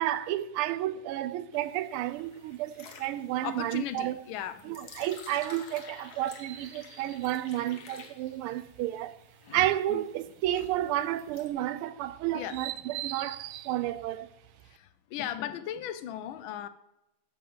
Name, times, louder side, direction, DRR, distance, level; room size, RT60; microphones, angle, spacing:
voice 1, 0.0-4.2 4.6-9.2 9.5-14.3, right 13 dB, 85° right, 1.5 m, -31 dB
sound 1, 1.5-11.5, left 5 dB, 50° left, 1.5 m, -50 dB
voice 2, 3.4-4.8 7.7-7.8 10.5-10.6 12.3-12.6 14.6-16.7, left 10 dB, 75° left, 1.4 m, -37 dB
11.5 x 7.6 x 3.9 m
omnidirectional pair, 2.3 m